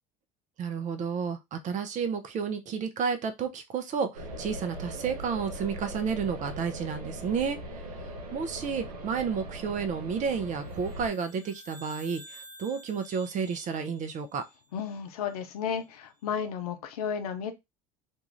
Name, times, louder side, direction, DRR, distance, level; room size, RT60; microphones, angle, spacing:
voice 1, 0.6-14.4, right 6 dB, 40° right, 0.6 m, -31 dB
sound 1, 4.1-11.1, right 1 dB, 85° right, 0.7 m, -40 dB
sound 2, 10.7-15.2, right 1 dB, 25° right, 1.2 m, -51 dB
voice 2, 14.7-17.5, left 7 dB, 80° left, 0.6 m, -33 dB
2.6 x 2.4 x 3.0 m
hypercardioid pair, 70°, 19 cm